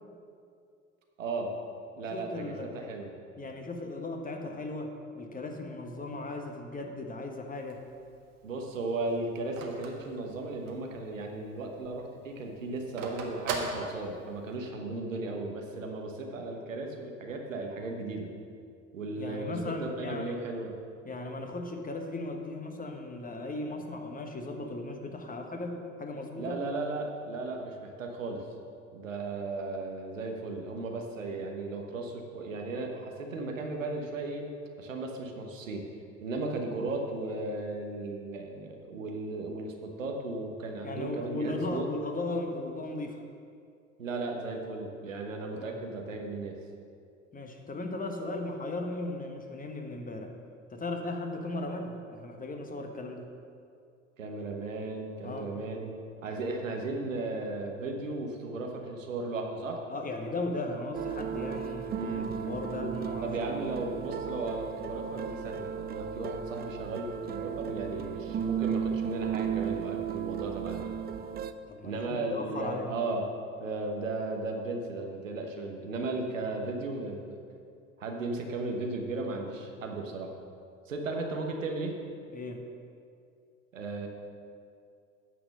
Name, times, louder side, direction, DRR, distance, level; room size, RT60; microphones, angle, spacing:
voice 1, 1.2-1.5 1.9-3.1 8.4-18.3 18.9-20.7 26.4-28.4 28.9-34.5 34.8-35.8 36.2-41.9 44.0-46.6 54.2-55.9 56.2-59.8 61.9-62.6 63.2-70.9 71.8-73.3 73.6-77.4 78.0-80.4 80.9-82.0 83.7-84.1, right 2 dB, 85° right, 2 dB, 1.1 m, -35 dB
voice 2, 2.1-2.7 3.4-7.8 19.2-20.4 21.0-26.6 40.8-43.2 45.5-45.7 47.3-50.3 50.7-53.3 55.2-55.5 59.9-63.3 71.7-72.9 82.3-82.6, left 2 dB, 20° left, 3 dB, 1.4 m, -37 dB
Telephone, 7.5-10.9 11.3-11.4 11.7-14.6, right 4 dB, 70° right, 1.5 m, -38 dB
sound 1, 60.9-71.5, right 8 dB, 25° right, 0.5 m, -35 dB
9.7 x 6.1 x 6.6 m, 2.4 s
hypercardioid pair, 65°, 38 cm